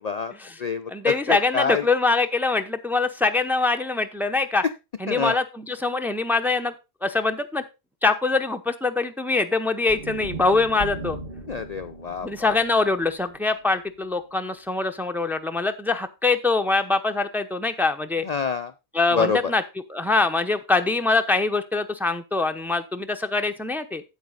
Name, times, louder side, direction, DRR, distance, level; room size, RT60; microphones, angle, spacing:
voice 1, 0.0-0.3 0.6-1.8 5.1-5.4 11.5-12.6 18.2-18.7 19.1-19.4, left 5 dB, 50° left, 9 dB, 0.6 m, -27 dB
voice 2, 0.9-4.6 5.0-6.7 7.0-7.6 8.0-11.2 12.2-18.3 18.9-19.6 19.9-24.0, left 3 dB, ahead, 7 dB, 0.7 m, -23 dB
sound 1, 9.9-14.1, right 2 dB, 50° right, 2.3 m, -38 dB
9.2 x 8.1 x 3.9 m, 0.26 s
omnidirectional pair, 1.1 m